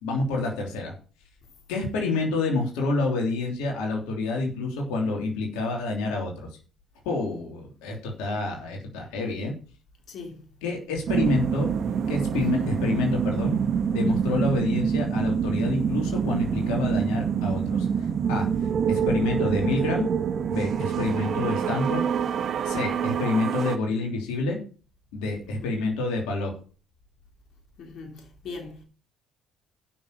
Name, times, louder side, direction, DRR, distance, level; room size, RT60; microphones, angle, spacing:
voice 1, 0.0-0.9 1.7-6.5 7.0-9.5 10.6-11.7 12.1-13.5 13.9-18.5 18.9-20.1 20.5-22.0 22.6-24.6 25.1-26.5, left 3 dB, 80° left, 3.2 m, -28 dB
voice 2, 10.1-10.4 12.3-12.8 14.1-14.5 20.8-21.1 25.6-25.7 27.8-28.8, left 3 dB, 60° left, 3.1 m, -41 dB
Eerie Ambience, 11.1-23.8, right 7 dB, 55° right, 1.1 m, -26 dB
9.8 x 6.4 x 6.8 m
hypercardioid pair, 65°, 0 cm